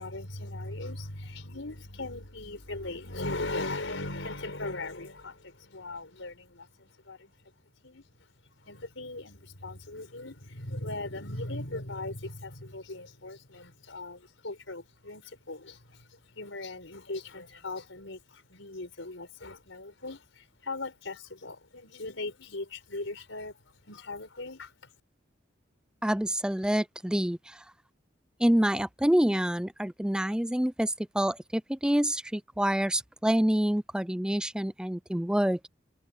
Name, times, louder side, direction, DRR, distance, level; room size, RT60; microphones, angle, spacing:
voice 1, 0.0-7.3 7.8-8.0 8.6-24.9, left 2 dB, 85° left, 4.9 m, -39 dB
voice 2, 26.0-27.6 28.4-35.7, equal, 5° right, 0.4 m, -27 dB
head